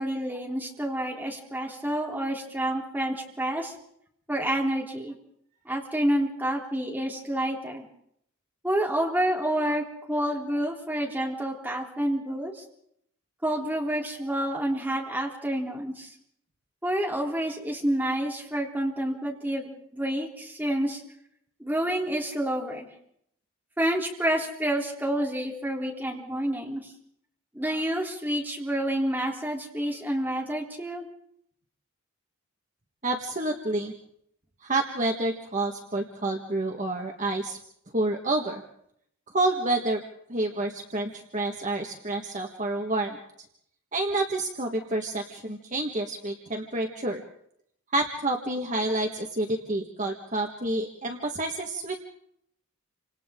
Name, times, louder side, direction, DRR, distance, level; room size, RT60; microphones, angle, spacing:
voice 1, 0.0-3.7 4.3-5.1 5.7-7.9 8.6-12.6 13.4-16.1 16.8-21.0 21.6-22.9 23.8-26.9 27.5-31.1, right 1 dB, 10° right, -2 dB, 3.5 m, -28 dB
voice 2, 33.0-33.9 34.6-37.6 37.9-38.6 39.3-40.0 40.3-43.2 43.9-47.2 47.9-52.0, right 2 dB, 35° right, 2 dB, 1.5 m, -28 dB
29.0 x 27.0 x 3.8 m, 0.72 s
head